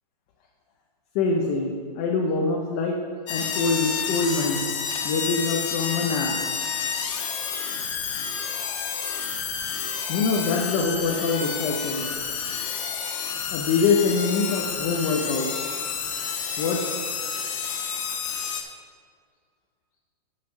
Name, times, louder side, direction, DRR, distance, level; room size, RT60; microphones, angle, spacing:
voice 1, 1.1-3.0 3.3-4.6 5.0-6.3 10.1-12.1 13.5-15.5 16.6-17.0, left 4 dB, 15° left, 0 dB, 0.4 m, -24 dB
sound 1, 3.3-18.6, left 6 dB, 50° left, 1.2 m, -30 dB
8.6 x 5.7 x 6.2 m, 2.1 s
hypercardioid pair, 175°, 21 cm